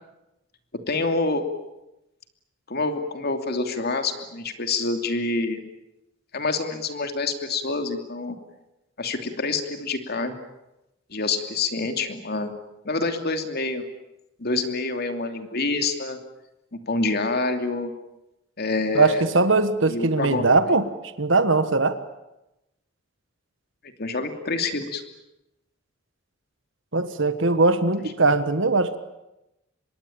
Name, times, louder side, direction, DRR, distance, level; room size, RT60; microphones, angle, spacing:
voice 1, 0.9-1.5 2.7-5.6 6.3-8.4 9.0-10.4 11.1-12.5 12.8-13.8 14.4-16.2 16.7-17.9 18.6-19.2 19.9-20.4 24.0-25.0, left 3 dB, 55° left, 7 dB, 2.8 m, -27 dB
voice 2, 18.9-20.9 21.2-22.0 26.9-29.0, right 3 dB, 70° right, 11 dB, 1.5 m, -20 dB
25.5 x 22.0 x 8.8 m, 0.92 s
head